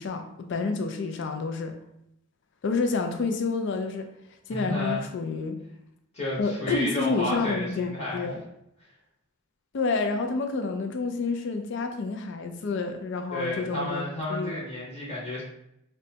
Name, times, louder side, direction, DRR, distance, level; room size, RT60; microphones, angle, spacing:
voice 1, 0.0-1.7 2.6-4.1 4.5-5.6 6.4-8.4 9.7-14.0 14.3-14.5, left 4 dB, 55° left, 5 dB, 0.4 m, -29 dB
voice 2, 4.5-5.0 6.1-8.3 13.3-15.4, left 1 dB, 30° left, -5 dB, 0.8 m, -32 dB
5.0 x 2.2 x 2.7 m, 0.81 s
head